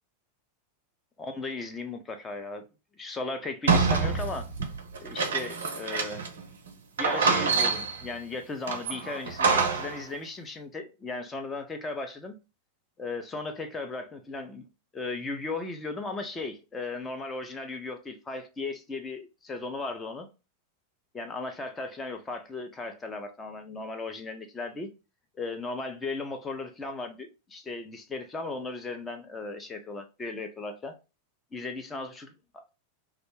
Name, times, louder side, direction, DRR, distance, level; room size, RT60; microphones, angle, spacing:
voice 1, 1.2-2.6 3.0-4.5 5.0-6.2 7.0-12.3 13.0-14.6 14.9-20.3 21.1-24.9 25.4-31.0 31.5-32.3, left 3 dB, 15° left, 0.5 m, -36 dB
sound 1, 3.7-6.4 6.7-6.8 7.0-8.1 8.7-10.0, right 4 dB, 65° right, 0.4 m, -26 dB
2.4 x 2.0 x 3.1 m
figure-of-eight pair, 90°, 0 cm